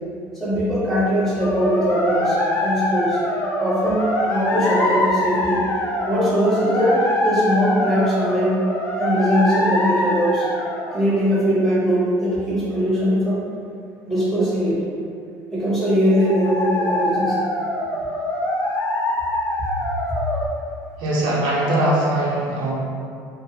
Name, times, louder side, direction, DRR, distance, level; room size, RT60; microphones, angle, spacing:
voice 1, 0.4-3.2 3.6-5.7 6.1-8.6 9.0-10.5 10.9-13.5 14.1-14.8 15.5-17.4, equal, 5° left, -10 dB, 0.8 m, -20 dB
sound 1, 1.4-11.2 16.1-20.5, left 1 dB, 30° left, 0.4 m, -24 dB
voice 2, 21.0-22.7, right 1 dB, 70° right, -6 dB, 0.6 m, -21 dB
2.5 x 2.3 x 2.7 m, 2.4 s
cardioid pair, 145°, 8 cm